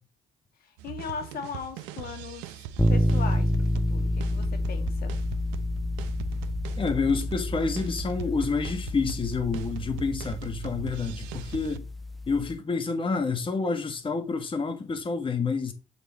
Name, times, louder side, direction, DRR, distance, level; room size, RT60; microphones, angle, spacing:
voice 1, 0.8-5.1, left 6 dB, 65° left, 1.9 m, -39 dB
sound 1, 0.8-11.8, right 12 dB, 85° right, 0.6 m, -41 dB
sound 2, 2.8-12.6, left 1 dB, ahead, 0.9 m, -29 dB
voice 2, 6.8-11.8 12.3-15.7, left 4 dB, 30° left, 1.5 m, -28 dB
7.7 x 4.5 x 4.1 m
hypercardioid pair, 60°, 16 cm